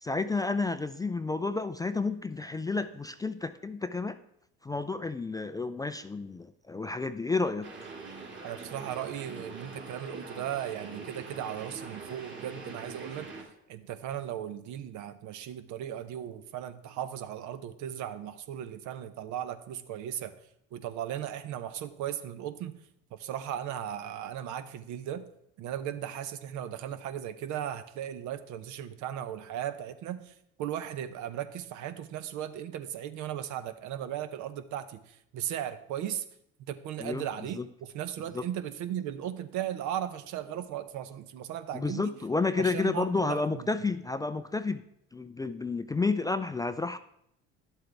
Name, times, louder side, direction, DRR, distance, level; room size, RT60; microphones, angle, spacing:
voice 1, 0.0-4.2 4.6-7.7 37.0-37.3 37.5-37.7 38.3-38.4 41.7-44.8 45.1-47.0, left 3 dB, 10° left, 11 dB, 0.3 m, -31 dB
sound 1, 7.6-13.4, right 4 dB, 35° right, 2.4 m, -44 dB
voice 2, 8.4-13.3 13.7-20.4 20.7-22.7 23.1-25.2 25.6-36.2 36.6-42.0 42.6-43.7, right 10 dB, 60° right, 12 dB, 0.8 m, -37 dB
11.0 x 7.8 x 3.4 m, 0.74 s
supercardioid pair, 80°, 33 cm